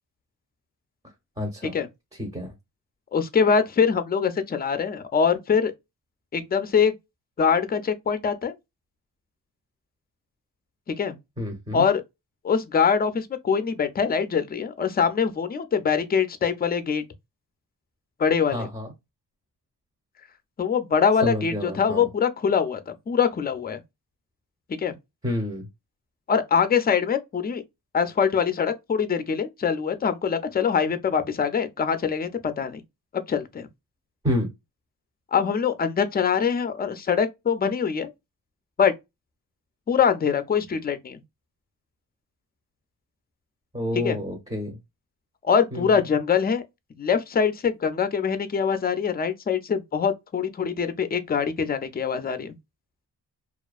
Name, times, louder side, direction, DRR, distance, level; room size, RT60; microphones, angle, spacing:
voice 1, 1.4-1.8 2.2-2.5 11.4-11.9 18.5-18.9 21.2-22.1 25.2-25.7 34.2-34.5 43.7-44.8 45.7-46.0, left 1 dB, 15° right, 0.7 m, -29 dB
voice 2, 3.1-5.7 6.3-6.9 7.4-8.5 10.9-11.2 11.7-12.0 12.4-17.0 18.2-18.7 20.6-23.8 24.8-24.9 26.3-27.6 27.9-32.3 32.6-32.8 33.3-33.7 35.3-38.1 38.8-38.9 39.9-41.2 43.9-44.2 45.4-46.6 47.0-52.6, left 6 dB, 25° left, 0.4 m, -23 dB
2.4 x 2.2 x 2.3 m
cardioid pair, 65°, 41 cm